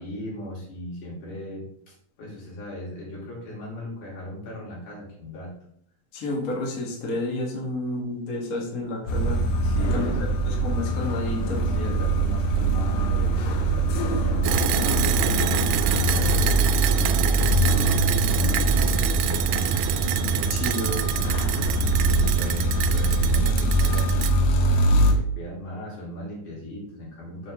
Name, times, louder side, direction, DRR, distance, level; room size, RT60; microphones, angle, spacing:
voice 1, 0.0-5.6 9.6-10.7 11.6-19.8 22.0-27.5, left 1 dB, 70° left, -4 dB, 4.3 m, -38 dB
voice 2, 6.1-9.4 9.9-11.6 20.5-21.1, left 1 dB, 35° left, -2 dB, 1.6 m, -30 dB
sound 1, 9.1-25.1, right 1 dB, 90° left, 2.6 m, -23 dB
sound 2, 14.4-24.3, right 12 dB, 85° right, 2.2 m, -26 dB
7.2 x 6.9 x 3.7 m, 0.66 s
omnidirectional pair, 3.8 m